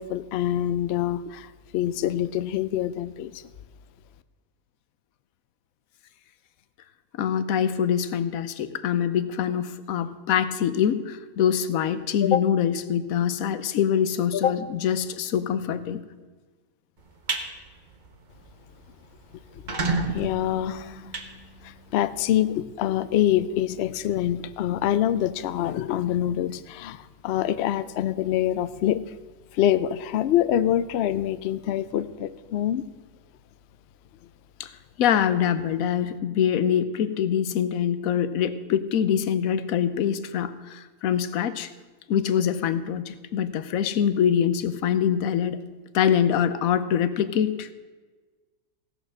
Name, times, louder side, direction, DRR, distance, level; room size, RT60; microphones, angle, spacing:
voice 1, 0.0-3.4 20.1-21.1 21.6-29.0 29.5-32.8, left 11 dB, 85° left, 14 dB, 0.5 m, -25 dB
voice 2, 7.2-16.0 34.6-34.7 35.0-41.7 42.1-45.6 45.9-47.7, left 8 dB, 70° left, 13 dB, 1.0 m, -24 dB
sound 1, 17.0-17.5 17.9-18.1 18.5-18.6 18.8-18.9 19.5-22.0, right 3 dB, 35° right, 0.9 m, -30 dB
16.5 x 6.4 x 6.3 m, 1.3 s
omnidirectional pair, 1.7 m